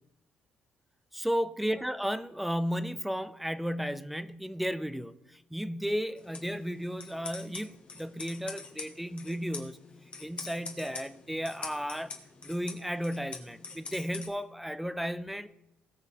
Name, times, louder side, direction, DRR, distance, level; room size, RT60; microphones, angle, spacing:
voice 1, 1.1-9.8 10.2-12.1 12.4-15.5, equal, 5° right, 0.3 m, -34 dB
sound 1, 6.2-14.3, left 4 dB, 35° left, 1.5 m, -45 dB
18.0 x 7.4 x 3.4 m
cardioid pair, 165°, 3 cm